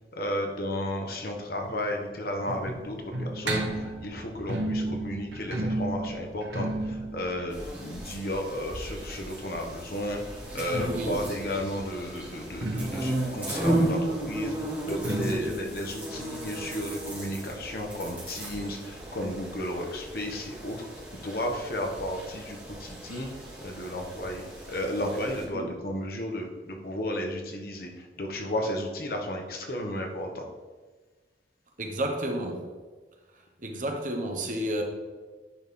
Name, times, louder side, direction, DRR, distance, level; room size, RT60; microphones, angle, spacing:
voice 1, 0.1-14.5 14.8-20.8 21.1-23.3 23.6-27.9 28.2-30.5, left 1 dB, 55° left, 1.1 m, -33 dB
sound 1, 1.6-9.3 10.5-17.8 18.1-18.2 18.5-18.6 19.2-19.3, right 2 dB, 80° right, 1.0 m, -35 dB
sound 2, 7.5-25.5, right 1 dB, 10° right, 2.2 m, -35 dB
voice 2, 10.9-11.2 15.3-15.6 25.5-25.7 31.8-32.7 33.6-34.8, right 1 dB, 45° right, 1.0 m, -32 dB
10.0 x 4.3 x 3.6 m
head